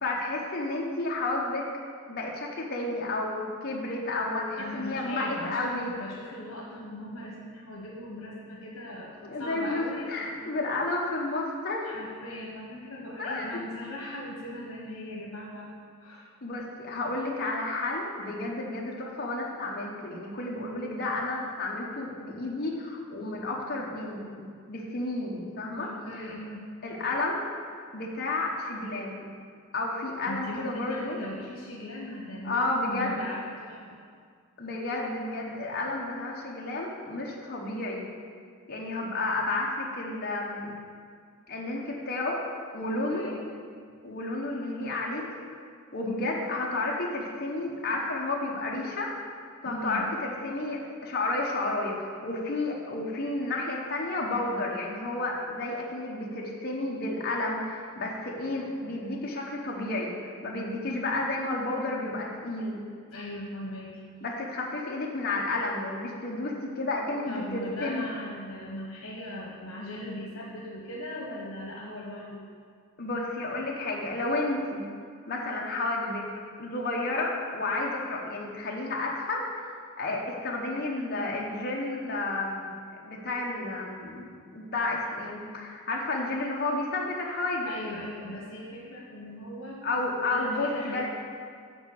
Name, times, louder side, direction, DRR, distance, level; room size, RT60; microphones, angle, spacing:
voice 1, 0.0-1.7 2.1-5.9 9.2-11.9 13.2-13.6 16.4-25.9 26.2-26.3 26.8-27.5 27.9-29.3 29.7-31.2 32.4-33.3 34.6-38.0 38.7-40.7 41.5-42.5 42.7-43.3 44.0-45.5 45.9-49.1 49.6-62.8 64.2-68.1 73.0-74.9 75.3-76.3 76.6-82.7 83.0-84.3 84.5-87.8 89.8-91.1, left 2 dB, 50° left, -2 dB, 1.0 m, -31 dB
voice 2, 4.6-10.5 11.8-15.7 16.0-16.3 25.8-26.7 30.3-34.0 42.8-43.4 49.6-50.1 63.1-64.0 67.2-72.5 87.6-89.8 90.3-91.1, left 1 dB, 80° left, -2 dB, 1.2 m, -39 dB
7.1 x 4.9 x 6.9 m, 2.1 s
head